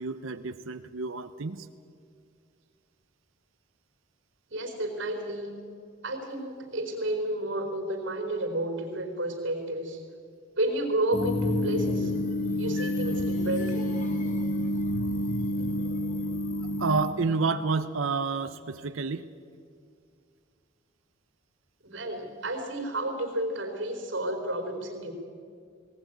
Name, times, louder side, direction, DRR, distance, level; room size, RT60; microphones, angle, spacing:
voice 1, 0.0-1.7 16.8-19.3, right 4 dB, 80° right, 10 dB, 0.7 m, -29 dB
voice 2, 4.5-5.5 6.0-10.0 10.5-12.1 12.6-14.0 21.8-25.1, right 1 dB, 65° right, 4 dB, 4.2 m, -31 dB
sound 1, 11.1-17.1, left 1 dB, 40° left, 1.8 m, -28 dB
19.0 x 19.0 x 9.4 m, 2.3 s
head